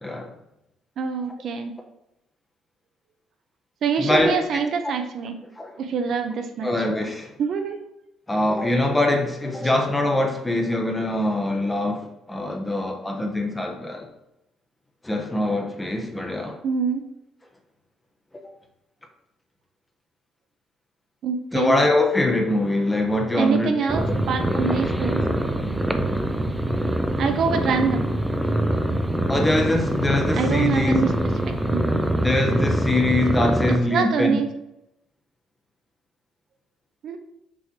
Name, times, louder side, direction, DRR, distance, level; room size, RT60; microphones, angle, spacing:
voice 1, 0.0-0.3 4.0-4.6 5.6-5.8 6.6-7.4 8.3-14.1 15.0-16.6 18.3-18.4 21.5-24.0 29.3-31.0 32.2-34.4, left 1 dB, 10° left, 0.8 m, -23 dB
voice 2, 1.0-1.7 3.8-5.4 5.8-6.7 7.4-7.8 16.6-17.0 21.2-21.8 23.4-25.2 27.2-28.1 30.3-31.1 31.7-31.9 33.9-34.5 37.0-37.2, right 5 dB, 50° right, 0.7 m, -25 dB
sound 1, 23.9-33.8, right 1 dB, 5° right, 0.5 m, -24 dB
6.1 x 3.2 x 5.8 m
cardioid pair, 145°, 0 cm